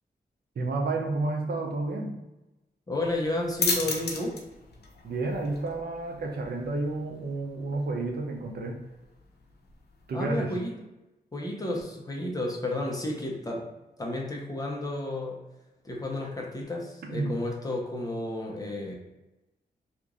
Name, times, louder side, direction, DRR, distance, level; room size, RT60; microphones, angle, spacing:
voice 1, 0.6-2.1 5.0-8.8 10.1-10.5 17.0-17.3, right 2 dB, 70° right, 2 dB, 0.7 m, -30 dB
voice 2, 2.9-4.3 10.1-10.8 11.3-13.7 14.0-15.4 15.8-18.9, left 1 dB, 20° left, -1 dB, 0.8 m, -32 dB
sound 1, 3.0-10.3, left 4 dB, 80° left, 0.6 m, -37 dB
2.9 x 2.5 x 3.7 m, 1.0 s
wide cardioid pair, 110°, 17 cm